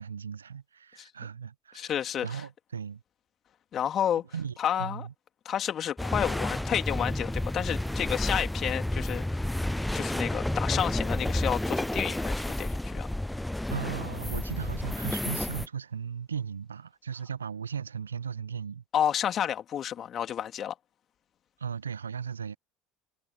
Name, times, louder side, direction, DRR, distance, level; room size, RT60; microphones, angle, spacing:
voice 1, 0.0-1.9 2.2-3.0 4.3-5.1 13.7-18.8 21.6-22.6, right 7 dB, 85° right, 1.0 m, -37 dB
voice 2, 1.7-2.4 3.7-4.2 4.6-5.1 5.4-9.2 9.9-13.1 18.9-20.7, left 9 dB, 40° left, 2.8 m, -30 dB
sound 1, 6.0-15.7, left 1 dB, 5° left, 0.4 m, -31 dB
figure-of-eight pair, 70°, 0 cm